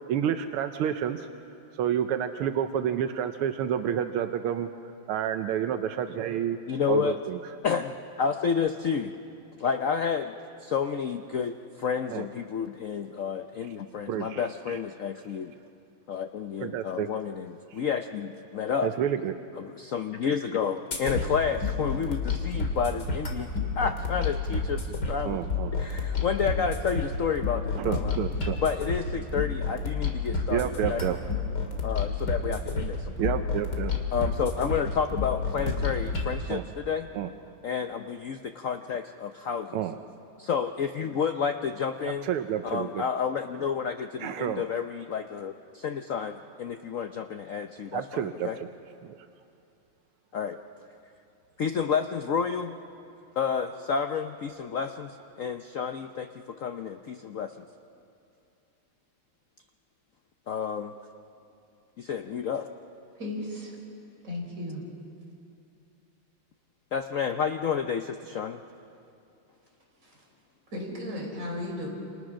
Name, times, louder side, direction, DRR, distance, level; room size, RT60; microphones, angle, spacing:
voice 1, 0.1-1.3 1.8-4.7 5.1-6.6 6.9-7.4 12.1-12.2 14.1-14.8 16.6-17.1 17.7-17.8 18.8-19.4 23.6-23.7 25.2-25.7 27.7-28.6 30.5-31.2 33.2-33.9 36.5-36.6 37.1-37.3 39.7-40.0 42.2-43.0 44.2-44.6 47.9-48.7 49.0-49.2, right 9 dB, 90° right, 8 dB, 1.7 m, -29 dB
voice 2, 6.7-7.2 7.6-9.1 9.6-10.4 10.6-15.6 16.1-18.9 19.6-23.5 23.8-25.4 25.7-28.2 28.6-31.0 31.8-33.4 34.1-37.1 37.6-39.8 40.4-42.3 42.6-48.6 50.3-50.6 51.6-52.8 53.4-57.6 60.5-60.9 62.0-62.7 66.9-68.6, left 6 dB, 80° left, 7 dB, 0.7 m, -30 dB
sound 1, 20.9-36.3, left 4 dB, 50° left, 3.1 m, -30 dB
voice 3, 63.2-63.7 64.2-64.8 70.0-70.2 70.7-71.9, left 1 dB, 35° right, -2 dB, 5.1 m, -35 dB
28.5 x 27.5 x 6.3 m, 2.6 s
omnidirectional pair, 2.4 m